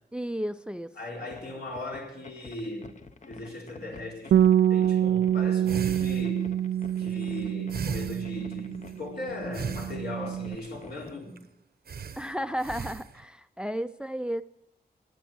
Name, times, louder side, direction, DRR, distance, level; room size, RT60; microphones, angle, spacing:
voice 1, 0.1-0.9 12.2-14.4, equal, 5° right, 0.4 m, -33 dB
voice 2, 1.0-4.4 4.7-6.5 7.0-11.4, left 2 dB, 70° left, 4.3 m, -38 dB
sound 1, 1.2-11.2, left 4 dB, 45° left, 0.9 m, -48 dB
Bass guitar, 4.3-9.0 9.3-10.6, right 10 dB, 85° right, 0.4 m, -26 dB
sound 2, 5.7-9.0 9.5-10.5 11.0-11.1 11.4-11.5 11.9-13.2, right 6 dB, 65° right, 0.8 m, -38 dB
19.0 x 7.5 x 6.2 m
wide cardioid pair, 115°, 17 cm